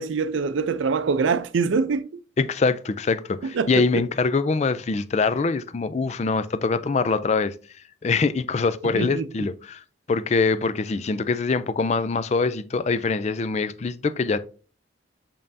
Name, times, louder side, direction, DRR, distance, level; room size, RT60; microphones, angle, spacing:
voice 1, 0.0-2.1 3.4-4.0 8.9-9.3, right 5 dB, 80° right, 0.4 m, -24 dB
voice 2, 2.4-7.5 8.0-9.8 10.1-14.4, left 4 dB, 35° left, 0.3 m, -24 dB
6.9 x 5.4 x 2.6 m
head